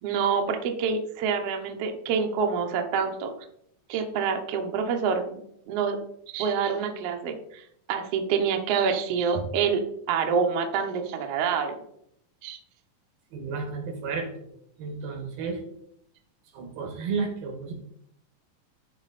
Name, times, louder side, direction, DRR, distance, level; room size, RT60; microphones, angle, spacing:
voice 1, 0.0-3.3 3.9-5.4 5.7-9.8 10.1-11.8 12.4-12.6, right 6 dB, 70° right, 5 dB, 1.5 m, -27 dB
voice 2, 13.3-14.3 14.8-15.6 16.5-17.7, right 5 dB, 90° right, 3 dB, 3.4 m, -32 dB
12.5 x 4.2 x 4.1 m, 0.71 s
omnidirectional pair, 4.0 m